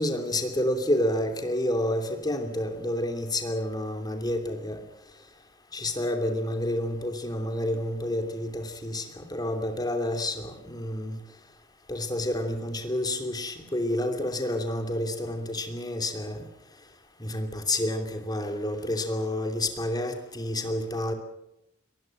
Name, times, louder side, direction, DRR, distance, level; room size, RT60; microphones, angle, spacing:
voice 1, 0.0-4.8 5.7-11.2 11.9-16.4 17.2-21.1, left 1 dB, 20° left, 6 dB, 2.9 m, -29 dB
23.0 x 20.0 x 7.7 m, 0.83 s
head